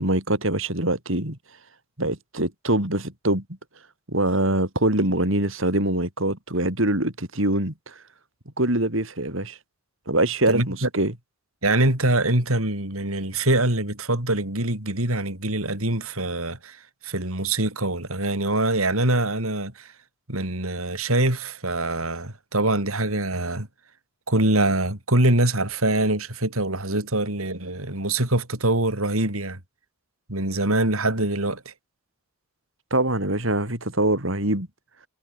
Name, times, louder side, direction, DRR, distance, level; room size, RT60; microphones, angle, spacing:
voice 1, 0.0-1.4 2.0-3.4 4.1-8.0 8.6-9.6 10.1-11.1 32.9-34.7, right 1 dB, 65° right, 5.5 m, -24 dB
voice 2, 10.5-10.9 11.6-19.9 20.3-23.7 24.3-29.6 30.3-31.7, right 2 dB, 80° right, 5.7 m, -24 dB
head